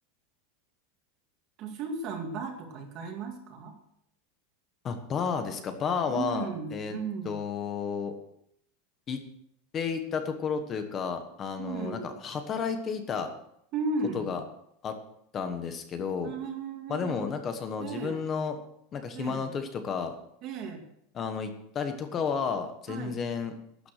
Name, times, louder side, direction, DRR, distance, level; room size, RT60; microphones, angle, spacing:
voice 1, 1.6-3.8 6.1-7.3 11.6-12.2 13.7-14.4 16.2-17.3 17.8-18.2 19.1-19.5 20.4-20.9 22.9-23.2, right 4 dB, 30° right, 4 dB, 2.2 m, -35 dB
voice 2, 4.8-7.0 7.2-8.1 9.1-9.2 9.7-13.3 14.1-14.4 14.8-14.9 15.3-16.3 16.9-18.6 18.9-20.2 21.1-23.6, left 6 dB, 20° left, 7 dB, 1.2 m, -32 dB
12.0 x 9.5 x 6.6 m, 0.73 s
supercardioid pair, 180°, 0 cm